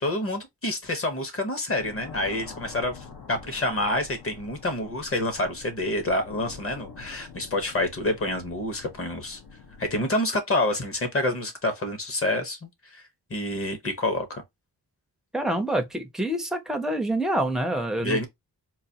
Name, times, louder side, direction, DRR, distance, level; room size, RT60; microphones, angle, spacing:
voice 1, 0.0-9.4 9.8-13.0 13.3-14.4 18.0-18.3, left 1 dB, 35° left, 0.9 m, -28 dB
sound 1, 1.8-10.0, left 5 dB, 75° left, 1.0 m, -45 dB
voice 2, 15.3-18.2, right 1 dB, ahead, 0.5 m, -26 dB
3.9 x 2.6 x 2.8 m
wide cardioid pair, 165°, 39 cm